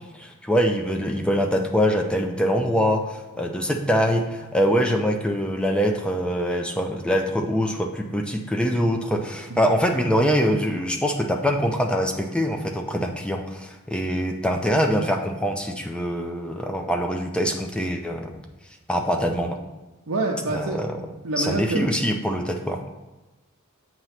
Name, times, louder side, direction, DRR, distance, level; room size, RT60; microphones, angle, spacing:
voice 1, 0.1-18.4 18.9-19.6 20.5-20.9 21.4-22.8, equal, 5° left, 3 dB, 0.5 m, -24 dB
voice 2, 20.1-21.9, right 2 dB, 75° right, -1 dB, 0.6 m, -27 dB
7.8 x 3.0 x 5.7 m, 1.1 s
head